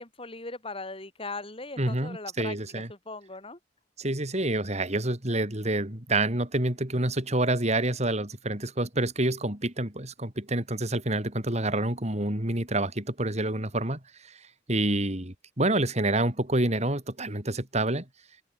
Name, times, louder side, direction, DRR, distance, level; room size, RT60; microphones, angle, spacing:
voice 1, 0.0-2.6 2.9-3.6, left 3 dB, 30° left, 5.5 m, -39 dB
voice 2, 1.8-2.9 4.0-14.4 14.7-18.0, right 2 dB, 40° right, 4.2 m, -28 dB
open air
head